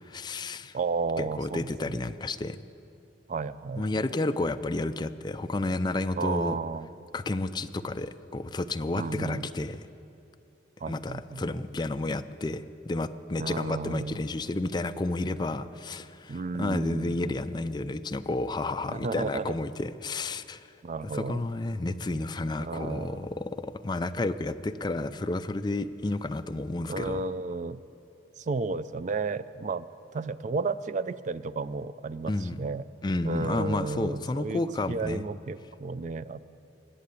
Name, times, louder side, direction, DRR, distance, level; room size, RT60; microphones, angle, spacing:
voice 1, 0.1-0.8 1.2-2.6 3.8-6.6 7.1-9.8 10.9-20.7 21.1-27.2 32.3-32.6 33.0-35.3, left 2 dB, 25° left, 10 dB, 0.4 m, -31 dB
voice 2, 0.7-2.0 3.3-4.0 6.2-6.9 8.9-9.5 10.8-11.4 13.4-14.2 16.3-17.2 18.9-19.6 20.8-21.4 22.6-23.3 26.9-27.8 28.4-29.9 30.1-32.8 33.2-34.6 34.9-36.5, right 4 dB, 45° right, 15 dB, 0.4 m, -33 dB
20.0 x 7.7 x 8.3 m, 2.7 s
head